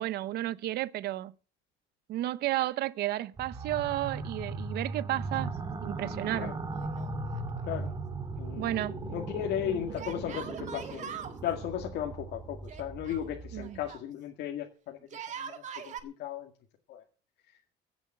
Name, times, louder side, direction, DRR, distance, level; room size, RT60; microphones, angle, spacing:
voice 1, 0.0-1.3 2.1-5.5 5.8-6.5 8.6-9.0 13.5-13.8, right 15 dB, 65° right, 0.8 m, -32 dB
sound 1, 3.4-13.9, right 3 dB, 25° right, 1.7 m, -38 dB
Yell, 6.7-7.6 7.8-7.9 10.0-11.4 12.7-14.1 15.0-16.0, right 8 dB, 40° right, 1.9 m, -42 dB
voice 2, 8.4-11.2 11.4-15.0 15.4-16.5 16.9-17.0, left 10 dB, 70° left, 2.1 m, -36 dB
16.5 x 7.3 x 7.6 m
cardioid pair, 150°, 18 cm